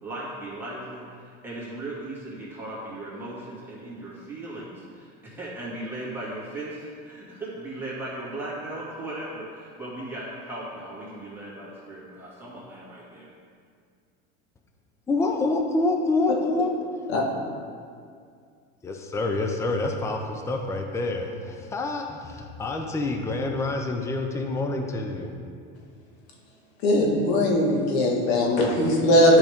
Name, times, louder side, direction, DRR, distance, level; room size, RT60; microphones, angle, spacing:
voice 1, 0.0-13.3, right 1 dB, 5° right, -9 dB, 2.1 m, -37 dB
voice 2, 15.1-16.7 18.8-25.3, left 2 dB, 10° left, 3 dB, 0.5 m, -27 dB
voice 3, 26.8-29.4, left 1 dB, 75° left, -1 dB, 1.8 m, -20 dB
11.0 x 5.2 x 3.6 m, 2.2 s
supercardioid pair, 130°, 32 cm